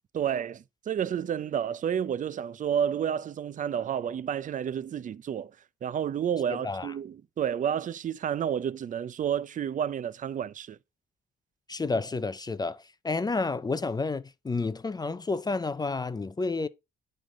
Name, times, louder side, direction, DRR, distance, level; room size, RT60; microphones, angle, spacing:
voice 1, 0.1-5.5 5.8-10.8, right 8 dB, 40° right, 0.5 m, -30 dB
voice 2, 11.7-16.7, left 3 dB, 20° left, 0.5 m, -30 dB
8.8 x 3.3 x 5.4 m
cardioid pair, 90°, 20 cm